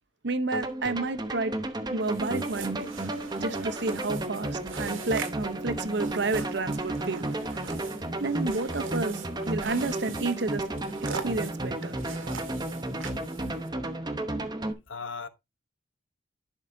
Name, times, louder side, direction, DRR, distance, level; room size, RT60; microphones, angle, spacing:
voice 1, 0.2-1.5 1.9-2.9 3.4-7.3 8.2-10.6 11.1-12.0, right 3 dB, 55° right, 0.8 m, -30 dB
sound 1, 0.5-14.7, right 2 dB, 20° right, 0.8 m, -33 dB
sound 2, 2.0-13.7, right 5 dB, 75° right, 1.9 m, -42 dB
voice 2, 14.9-15.3, left 4 dB, 70° left, 1.0 m, -39 dB
11.0 x 6.5 x 2.7 m
head